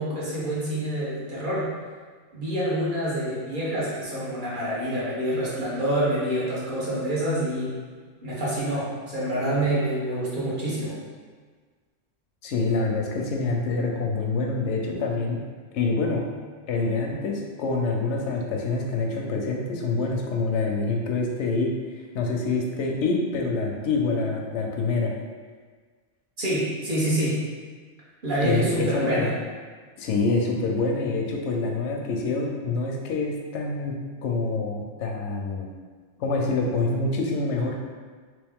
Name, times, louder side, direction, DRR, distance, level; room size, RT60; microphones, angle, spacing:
voice 1, 0.0-1.7 2.3-7.8 8.2-11.0 26.4-27.4 28.2-29.3, right 1 dB, 45° right, -7 dB, 1.1 m, -27 dB
voice 2, 12.4-15.4 15.7-16.2 16.7-21.7 22.1-25.1 28.4-29.4 30.0-33.9 34.2-35.7 36.2-37.8, left 3 dB, 85° left, 1 dB, 0.9 m, -26 dB
3.3 x 3.1 x 3.5 m, 1.5 s
omnidirectional pair, 1.2 m